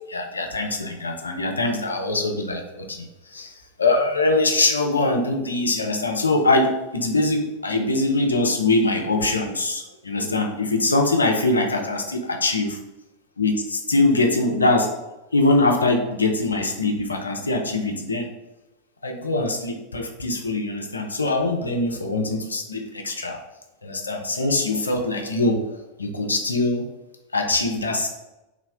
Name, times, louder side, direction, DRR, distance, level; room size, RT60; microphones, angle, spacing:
voice 1, 0.1-12.8 13.4-15.0 15.3-18.3 19.0-23.4 23.8-26.9 27.3-28.1, left 2 dB, 75° left, 2 dB, 0.4 m, -23 dB
3.2 x 2.0 x 2.4 m, 0.99 s
figure-of-eight pair, 90°, 0 cm